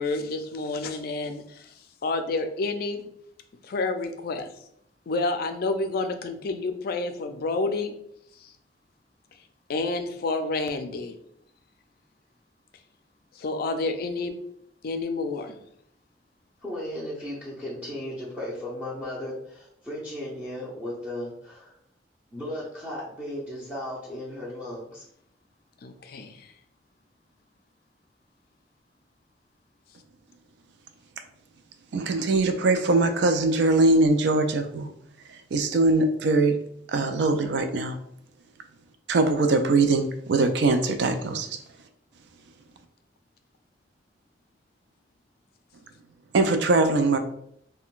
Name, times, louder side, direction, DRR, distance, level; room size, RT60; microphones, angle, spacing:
voice 1, 0.0-1.7 2.0-3.1 3.6-4.5 5.1-7.9 8.4-8.5 9.7-11.2 13.4-14.3 14.8-15.6 25.8-26.5, left 3 dB, 55° left, 7 dB, 0.4 m, -29 dB
voice 2, 16.6-21.7 22.3-25.0, left 1 dB, 10° right, -8 dB, 0.7 m, -35 dB
voice 3, 31.9-34.9 35.5-36.6 36.9-38.0 39.1-41.6 46.3-47.2, right 3 dB, 70° right, 7 dB, 0.4 m, -22 dB
3.7 x 2.2 x 2.4 m, 0.71 s
head